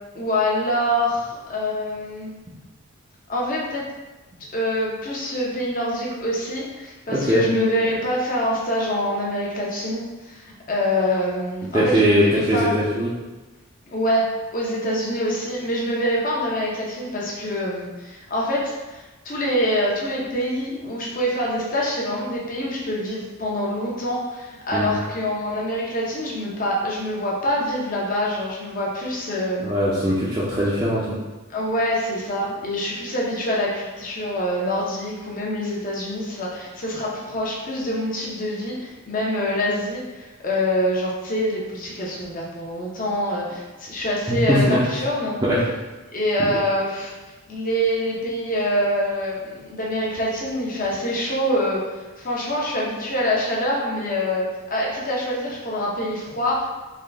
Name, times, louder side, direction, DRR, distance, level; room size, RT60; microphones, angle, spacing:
voice 1, 0.1-2.3 3.3-3.8 4.5-12.7 13.9-29.7 31.5-45.4 46.1-47.1 47.5-54.4 54.7-56.7, equal, 40° left, -4 dB, 0.7 m, -25 dB
voice 2, 7.1-7.5 11.7-13.1 24.7-24.9 29.6-31.2 44.3-44.8 45.4-45.6, equal, 15° right, -9 dB, 0.4 m, -20 dB
3.7 x 2.2 x 3.3 m, 1.2 s
head